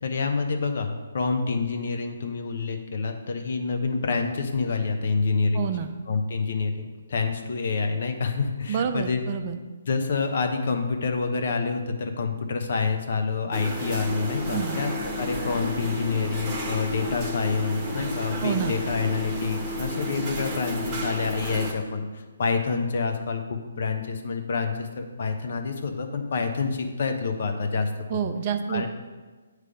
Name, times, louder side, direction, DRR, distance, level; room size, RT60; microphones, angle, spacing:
voice 1, 0.0-5.6 6.1-9.2 9.9-14.9 15.2-28.2 28.7-28.9, left 4 dB, 60° left, 5 dB, 0.9 m, -27 dB
voice 2, 5.5-5.9 8.7-9.6 14.5-14.8 18.4-18.8 28.1-28.9, right 8 dB, 35° right, 8 dB, 0.4 m, -28 dB
sound 1, 13.5-21.8, equal, 15° right, 1.2 m, -32 dB
8.4 x 3.3 x 5.2 m, 1.3 s
hypercardioid pair, 150°, 0 cm